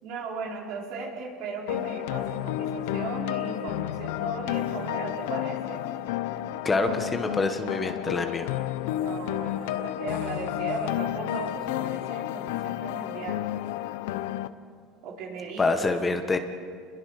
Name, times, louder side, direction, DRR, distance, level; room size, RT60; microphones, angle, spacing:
voice 1, 0.0-5.8 9.0-13.4 15.0-15.9, right 4 dB, 65° right, -1 dB, 4.4 m, -37 dB
sound 1, 1.7-14.5, left 13 dB, 85° left, 0.7 m, -31 dB
voice 2, 6.6-8.5 15.6-16.4, left 3 dB, 20° left, 7 dB, 1.3 m, -26 dB
28.0 x 21.5 x 4.9 m, 2.2 s
supercardioid pair, 125°, 0 cm